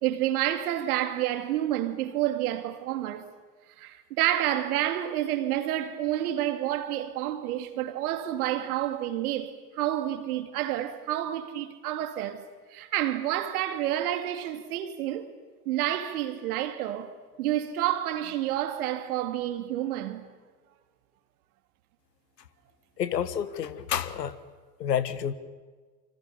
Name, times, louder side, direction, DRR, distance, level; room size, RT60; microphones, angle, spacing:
voice 1, 0.0-3.3 3.8-12.4 12.7-15.3 15.7-17.1 17.4-20.3, right 12 dB, 65° right, 2.6 m, -29 dB
voice 2, 23.0-24.4 24.8-25.3, left 9 dB, 80° left, 1.6 m, -29 dB
27.5 x 25.5 x 7.0 m
hypercardioid pair, 85°, 48 cm